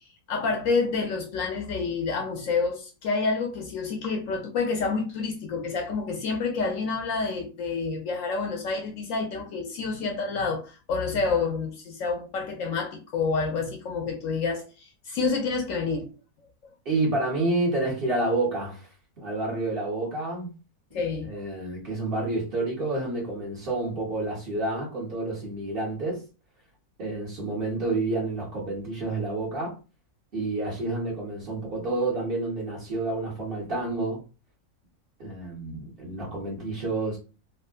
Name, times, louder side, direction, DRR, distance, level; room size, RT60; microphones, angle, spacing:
voice 1, 0.3-16.1 20.9-21.4, left 4 dB, 70° left, 0.9 m, -28 dB
voice 2, 16.8-18.9 19.2-20.6 21.2-26.2 27.0-29.8 30.3-34.2 35.2-37.2, right 2 dB, 40° right, 1.2 m, -29 dB
3.5 x 2.3 x 2.2 m
omnidirectional pair, 1.6 m